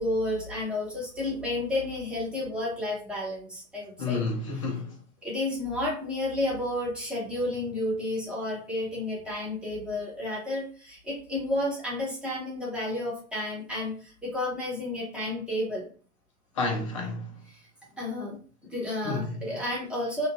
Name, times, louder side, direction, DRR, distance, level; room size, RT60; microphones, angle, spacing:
voice 1, 0.0-4.2 5.2-15.9 17.9-18.4 18.7-20.3, left 1 dB, ahead, 0.9 m, -31 dB
voice 2, 4.0-5.0 16.6-17.4 19.0-19.6, left 3 dB, 25° left, 0.4 m, -30 dB
3.0 x 2.5 x 3.7 m
figure-of-eight pair, 100°, 46 cm